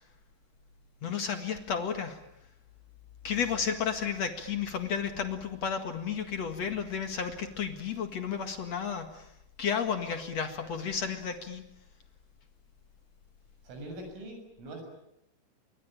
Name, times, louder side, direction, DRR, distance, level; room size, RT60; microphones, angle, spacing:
voice 1, 1.0-2.2 3.2-9.3 9.6-11.6, left 7 dB, 60° left, 7 dB, 1.8 m, -32 dB
voice 2, 13.6-14.8, right 1 dB, 75° right, 5 dB, 9.5 m, -42 dB
27.5 x 24.0 x 9.0 m, 0.83 s
omnidirectional pair, 5.9 m